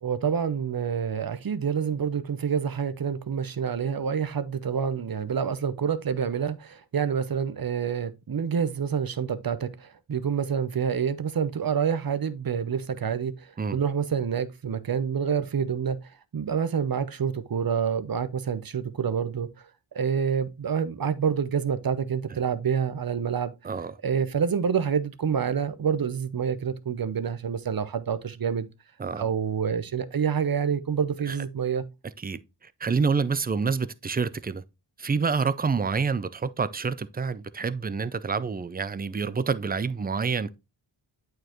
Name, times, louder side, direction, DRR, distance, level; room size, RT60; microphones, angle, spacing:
voice 1, 0.0-16.0 16.3-19.5 19.9-23.5 24.0-28.7 29.1-31.8, right 7 dB, 50° right, 0.8 m, -27 dB
voice 2, 32.8-34.6 35.0-40.6, right 5 dB, 20° right, 0.4 m, -27 dB
8.6 x 4.7 x 3.0 m
wide cardioid pair, 65°, 47 cm